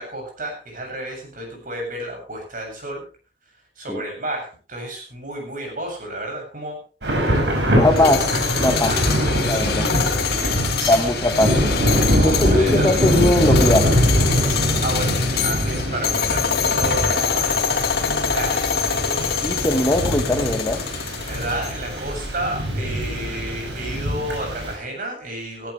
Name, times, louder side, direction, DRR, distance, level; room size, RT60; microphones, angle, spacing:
voice 1, 0.0-3.0 3.8-6.8 8.8-9.1 9.4-9.8 10.3-11.0 12.1-13.0 14.8-19.6 21.3-25.7, right 1 dB, 50° right, 2 dB, 7.8 m, -32 dB
Thunder / Rain, 7.0-24.7, equal, 75° right, 6.3 m, -23 dB
voice 2, 7.7-8.9 9.4-9.9 10.9-11.7 12.2-14.0 19.4-20.8, left 1 dB, 20° left, 7 dB, 1.2 m, -20 dB
sound 1, 7.9-22.0, left 7 dB, 65° left, 2.1 m, -25 dB
17.0 x 15.0 x 3.3 m, 0.35 s
head